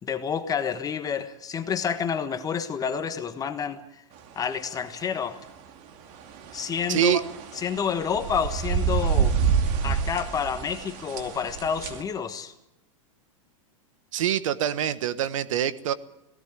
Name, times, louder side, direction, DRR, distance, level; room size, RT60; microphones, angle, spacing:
voice 1, 0.0-4.0 4.3-5.4 6.5-7.2 7.6-9.3 9.8-12.5, left 7 dB, 20° left, 8 dB, 1.4 m, -29 dB
sound 1, 6.1-12.0, right 6 dB, 45° right, 2.7 m, -28 dB
voice 2, 6.9-7.2 14.1-15.9, right 11 dB, 70° right, 14 dB, 1.3 m, -25 dB
18.0 x 17.5 x 9.8 m, 0.89 s
hypercardioid pair, 115°, 17 cm